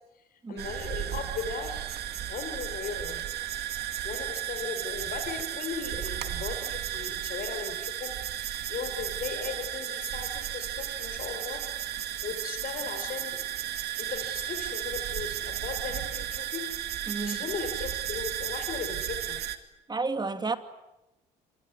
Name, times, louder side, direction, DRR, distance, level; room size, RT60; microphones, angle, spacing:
voice 1, 0.1-1.8 2.3-3.2 4.0-11.7 12.2-13.4 14.0-16.7 17.2-19.4, left 5 dB, 55° left, 4.9 m, -37 dB
sound 1, 0.6-19.6, right 12 dB, 65° right, 2.4 m, -34 dB
voice 2, 17.1-17.4 19.9-20.6, right 4 dB, 25° right, 2.5 m, -31 dB
27.0 x 22.5 x 9.6 m
supercardioid pair, 80°, 18 cm